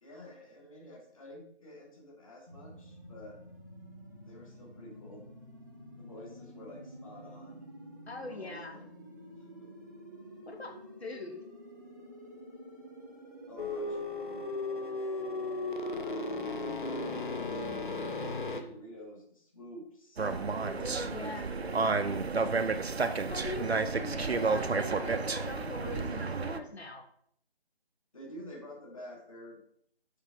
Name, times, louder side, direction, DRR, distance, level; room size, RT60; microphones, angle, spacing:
voice 1, 0.0-3.4 4.2-5.2 5.9-7.6 8.2-8.8 9.3-9.7 13.5-14.5 15.7-20.3 21.2-21.7 22.0-22.4 28.1-29.6, left 1 dB, 35° left, -1 dB, 1.7 m, -50 dB
sound 1, 2.5-17.4, right 1 dB, 20° right, 0.6 m, -50 dB
voice 2, 8.1-8.8 10.5-10.7 11.0-11.4 20.7-21.4 23.3-27.0, left 2 dB, 85° left, 4 dB, 1.0 m, -42 dB
sound 2, 13.6-18.6, left 2 dB, 55° left, 0.8 m, -35 dB
sound 3, 20.2-26.6, right 4 dB, 80° right, 0.7 m, -31 dB
6.5 x 4.8 x 3.8 m, 0.65 s
figure-of-eight pair, 160°, 31 cm